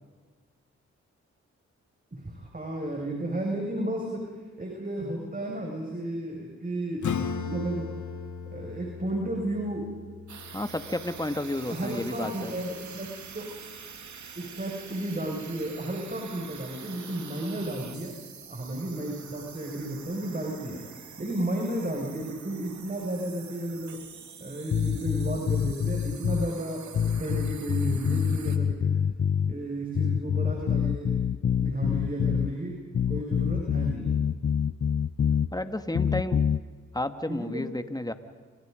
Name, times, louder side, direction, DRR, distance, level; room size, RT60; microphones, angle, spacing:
voice 1, 2.1-4.3 4.6-7.2 7.4-7.9 8.5-9.9 11.7-13.5 14.3-18.2 18.5-20.8 21.2-24.0 24.4-28.9 29.5-32.8 33.1-34.1 37.3-37.6, right 1 dB, 30° right, 0 dB, 6.6 m, -33 dB
Acoustic guitar / Strum, 7.0-12.2, left 6 dB, 75° left, 2.4 m, -37 dB
sound 1, 10.3-28.6, right 7 dB, 75° right, 2.7 m, -46 dB
voice 2, 10.5-12.5 35.5-36.4 36.9-38.1, left 1 dB, 15° left, 9 dB, 2.4 m, -31 dB
sound 2, 24.7-26.5 26.9-29.5 29.9-32.5 32.9-35.5 35.9-36.6, left 7 dB, 45° left, 0.7 m, -26 dB
29.5 x 27.5 x 5.4 m, 1.5 s
cardioid pair, 45°, 29 cm